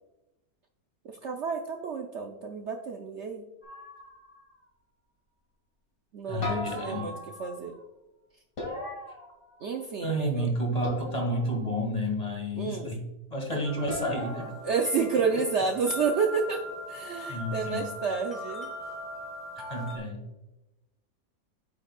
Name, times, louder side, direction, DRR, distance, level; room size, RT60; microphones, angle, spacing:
voice 1, 1.0-3.5 6.1-7.8 9.6-10.5 12.5-12.9 14.6-18.7, right 5 dB, 60° right, 3 dB, 0.8 m, -30 dB
sound 1, 3.6-4.5 6.4-7.8 8.6-9.8 10.8-11.7 13.9-14.5, left 2 dB, 65° left, 2.5 m, -38 dB
voice 2, 6.3-7.1 10.0-13.0 13.3-14.6 17.3-17.9 19.7-20.2, equal, 25° left, 1 dB, 1.5 m, -30 dB
sound 2, 13.6-20.0, equal, ahead, 1.6 m, -40 dB
8.8 x 6.3 x 2.3 m, 0.99 s
omnidirectional pair, 1.6 m